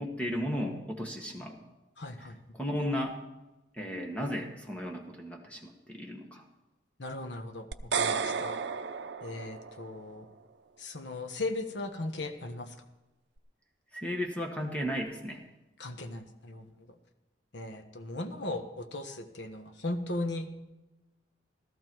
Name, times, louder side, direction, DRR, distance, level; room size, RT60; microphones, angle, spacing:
voice 1, 0.0-1.6 2.5-3.2 3.7-6.4 13.9-15.4, equal, 5° left, 1 dB, 1.3 m, -34 dB
voice 2, 2.0-2.4 7.0-8.6 9.2-10.3 10.8-12.7 15.8-17.0 17.5-20.5, left 2 dB, 75° left, 7 dB, 1.2 m, -37 dB
sound 1, 7.7-10.0, right 6 dB, 75° right, 0.6 m, -33 dB
14.5 x 14.0 x 4.6 m, 1.0 s
head